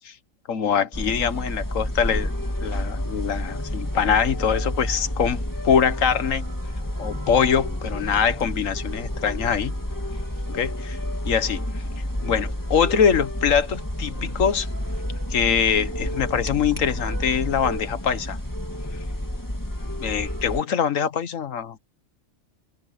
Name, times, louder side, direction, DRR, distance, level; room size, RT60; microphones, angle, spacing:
voice 1, 0.5-2.3 2.6-6.4 7.0-9.7 10.5-11.0 11.2-11.8 12.2-14.7 15.3-18.4 20.0-21.8, left 7 dB, 75° left, 1.5 m, -23 dB
sound 1, 0.9-20.6, left 1 dB, 15° left, 2.6 m, -30 dB
omnidirectional pair, 1.4 m